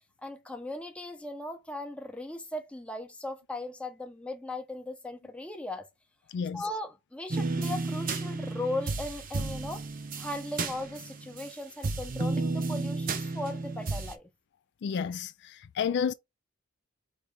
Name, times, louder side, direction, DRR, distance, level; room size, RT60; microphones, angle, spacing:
voice 1, 0.2-5.9 6.5-9.8 10.2-14.3, left 2 dB, 5° left, 0.7 m, -38 dB
sound 1, 7.3-11.5 11.8-14.1, right 3 dB, 40° right, 0.7 m, -32 dB
voice 2, 14.8-16.1, left 7 dB, 50° left, 0.3 m, -31 dB
4.8 x 3.2 x 3.4 m
head